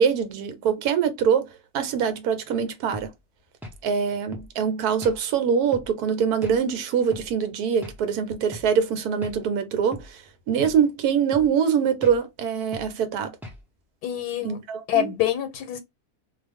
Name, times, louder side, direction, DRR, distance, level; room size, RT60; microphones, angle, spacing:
voice 1, 0.0-1.5 1.7-3.1 3.8-10.2 10.5-13.3 14.4-15.1, right 7 dB, 80° right, 1.1 m, -23 dB
sound 1, 2.9-3.1 3.6-3.8 4.3-4.5 5.0-5.2 5.7-5.9 6.4-6.6 7.1-7.3 7.8-8.0 8.5-8.7 9.2-9.4 9.9-10.1 10.6-10.8 11.3-11.5 12.0-12.2 12.7-12.9 13.4-13.6, left 1 dB, 5° right, 0.3 m, -39 dB
voice 2, 14.0-14.6 14.9-15.8, left 11 dB, 90° left, 1.2 m, -25 dB
2.5 x 2.3 x 3.3 m
omnidirectional pair, 1.7 m